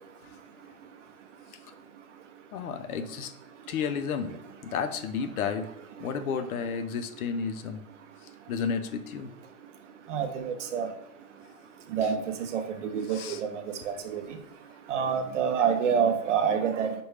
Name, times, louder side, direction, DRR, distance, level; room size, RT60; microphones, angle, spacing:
voice 1, 2.5-3.3 3.7-4.4 4.6-5.7 6.0-7.8 8.5-9.3 13.1-13.4, left 6 dB, 80° left, 8 dB, 0.6 m, -32 dB
voice 2, 10.1-10.9 11.9-12.2 12.5-14.2 14.9-16.9, right 7 dB, 55° right, 6 dB, 0.7 m, -27 dB
5.1 x 2.2 x 3.2 m, 0.76 s
hypercardioid pair, 155°, 43 cm